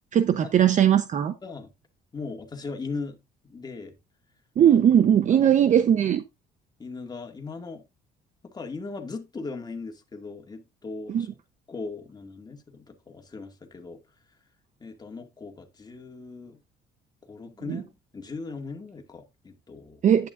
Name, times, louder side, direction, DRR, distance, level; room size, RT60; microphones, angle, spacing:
voice 1, 0.1-1.3 4.6-6.2 11.1-11.3 17.7-17.8 20.0-20.3, right 9 dB, 45° right, 0.8 m, -19 dB
voice 2, 2.1-3.9 4.7-4.8 5.3-5.8 6.8-7.8 8.4-11.3 11.7-14.0 14.8-16.6 17.2-20.1, left 4 dB, 25° left, 2.1 m, -38 dB
10.5 x 8.7 x 2.5 m
cardioid pair, 110°, 17 cm